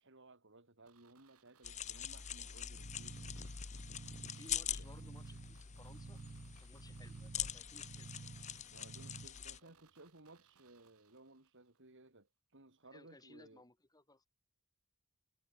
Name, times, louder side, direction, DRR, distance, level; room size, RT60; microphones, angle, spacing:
voice 1, 0.0-3.2 4.6-4.8 8.7-13.6, right 2 dB, 60° right, 3.4 m, -60 dB
sound 1, 0.8-11.8 12.1-12.2, right 7 dB, 85° right, 2.9 m, -71 dB
sound 2, 1.6-9.6, left 9 dB, 35° left, 0.7 m, -44 dB
sound 3, 2.8-9.3, right 4 dB, 35° right, 0.4 m, -52 dB
voice 2, 4.4-6.2 6.6-8.1 9.6-9.7 12.8-14.3, left 2 dB, 15° left, 3.2 m, -60 dB
head